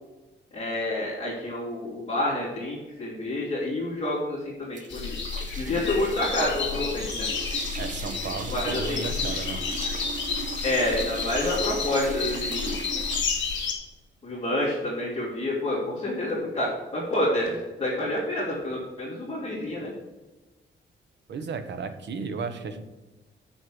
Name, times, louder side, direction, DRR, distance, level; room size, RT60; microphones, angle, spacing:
voice 1, 0.5-5.2 5.6-7.3 8.5-9.1 10.6-12.8 14.2-19.9, left 1 dB, 25° left, -8 dB, 2.6 m, -28 dB
sound 1, 4.8-13.2, right 6 dB, 40° right, 0.5 m, -39 dB
sound 2, 4.9-13.7, left 5 dB, 65° left, 2.5 m, -31 dB
voice 2, 7.8-9.6 21.3-22.8, right 5 dB, 65° right, 9 dB, 1.0 m, -34 dB
6.4 x 6.2 x 7.5 m, 1.2 s
wide cardioid pair, 175°, 20 cm